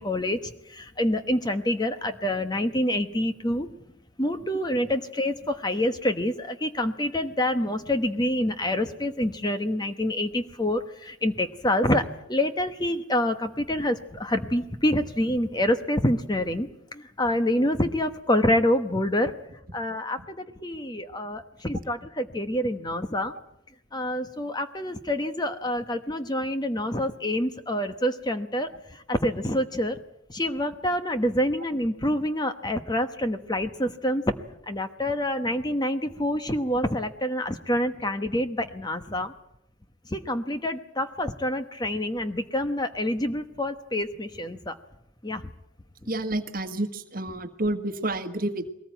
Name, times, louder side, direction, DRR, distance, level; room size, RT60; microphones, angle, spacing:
voice 1, 0.0-3.7 4.2-19.3 19.7-23.3 23.9-30.0 30.3-34.2 34.7-39.3 40.1-44.7 45.2-45.4, left 1 dB, 20° left, 9 dB, 1.0 m, -27 dB
voice 2, 46.1-48.7, right 1 dB, 45° right, 9 dB, 1.6 m, -29 dB
22.0 x 19.0 x 9.1 m, 0.82 s
head